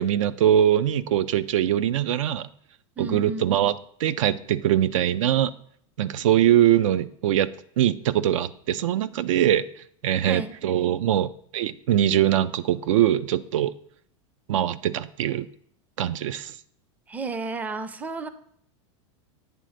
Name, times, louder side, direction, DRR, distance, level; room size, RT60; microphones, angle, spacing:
voice 1, 0.0-2.5 3.0-5.5 6.0-7.5 7.8-9.6 10.0-13.7 14.5-15.5 16.0-16.5, right 11 dB, 85° right, 15 dB, 0.4 m, -22 dB
voice 2, 3.0-3.5 10.2-10.5 17.1-18.3, right 3 dB, 10° right, 12 dB, 0.4 m, -32 dB
8.9 x 3.4 x 6.3 m, 0.64 s
supercardioid pair, 130°, 16 cm